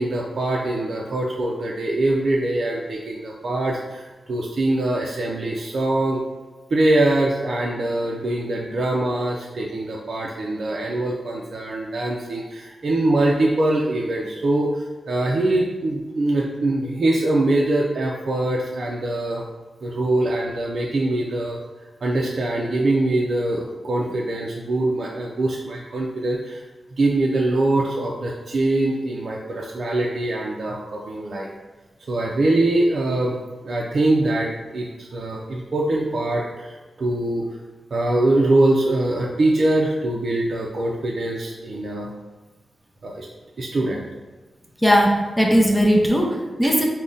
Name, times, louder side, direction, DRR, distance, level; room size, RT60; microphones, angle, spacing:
voice 1, 0.0-6.2 6.7-19.4 19.8-21.6 22.0-26.6 26.9-31.5 32.1-33.4 33.6-37.5 37.9-42.1 43.0-43.3 43.6-44.1 46.6-46.8, right 2 dB, 60° right, -2 dB, 0.4 m, -23 dB
voice 2, 44.8-46.8, equal, 5° left, 0 dB, 0.6 m, -18 dB
3.6 x 2.1 x 3.8 m, 1.2 s
cardioid pair, 65°, 0 cm